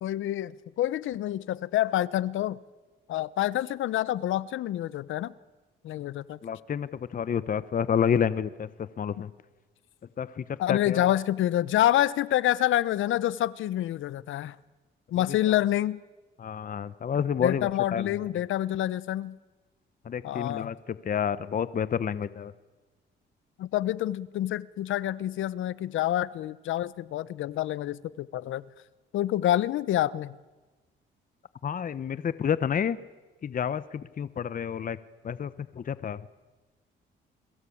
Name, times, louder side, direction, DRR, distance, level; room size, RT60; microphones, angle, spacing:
voice 1, 0.0-2.6 3.1-5.3 5.8-6.4 10.6-14.6 15.1-16.0 17.4-19.3 20.2-20.7 23.6-28.6 29.1-30.4, left 13 dB, 80° left, 19 dB, 1.0 m, -27 dB
voice 2, 6.4-9.3 10.2-11.2 16.4-18.1 20.0-22.5 31.6-33.0 33.4-35.0 35.2-36.2, left 7 dB, 45° left, 15 dB, 1.0 m, -29 dB
29.0 x 22.0 x 8.6 m, 1.2 s
cardioid pair, 90°, 20 cm